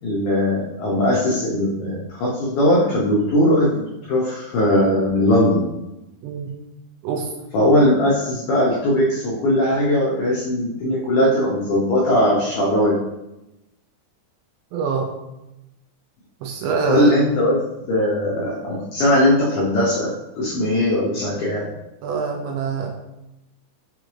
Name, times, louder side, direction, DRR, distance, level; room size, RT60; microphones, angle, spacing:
voice 1, 0.0-5.6 7.5-13.0 16.9-17.6 17.9-20.1 20.4-21.7, left 1 dB, 85° left, -5 dB, 1.7 m, -19 dB
voice 2, 6.2-6.6 7.0-7.3 14.7-15.1 16.4-17.1 22.0-22.9, right 5 dB, 80° right, 1 dB, 2.2 m, -24 dB
6.0 x 2.4 x 3.0 m, 0.95 s
omnidirectional pair, 4.4 m